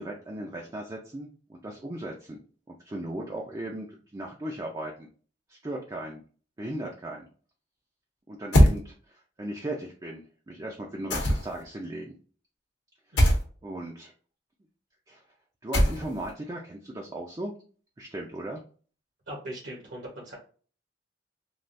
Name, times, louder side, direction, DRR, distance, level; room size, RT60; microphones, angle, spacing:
voice 1, 0.0-2.4 2.7-5.1 5.5-6.2 6.6-7.3 8.3-12.1 13.6-14.1 15.1-15.2 15.6-17.5 18.0-18.6, right 1 dB, 20° right, -1 dB, 0.4 m, -37 dB
sound 1, 8.5-8.8 11.1-11.6 13.2-13.4 15.7-16.3, equal, 70° left, 0.9 m, -20 dB
voice 2, 19.3-20.4, right 1 dB, 70° right, -3 dB, 1.0 m, -40 dB
3.3 x 2.3 x 2.5 m, 0.40 s
head